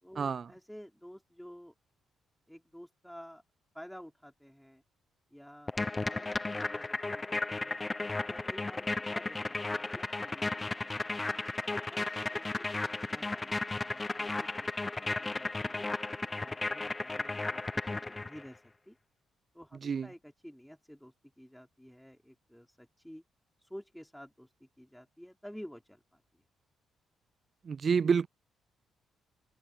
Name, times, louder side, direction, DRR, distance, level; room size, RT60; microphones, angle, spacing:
voice 1, 0.0-1.7 2.5-3.4 3.7-4.8 5.3-6.3 6.5-7.8 8.2-11.3 11.7-15.9 16.4-19.0 19.5-23.2 23.6-26.4, equal, ahead, 4.1 m, -52 dB
sound 1, 5.7-18.5, left 3 dB, 20° left, 0.8 m, -34 dB
voice 2, 27.7-28.3, right 6 dB, 45° right, 0.3 m, -28 dB
open air
cardioid pair, 90°, 0 cm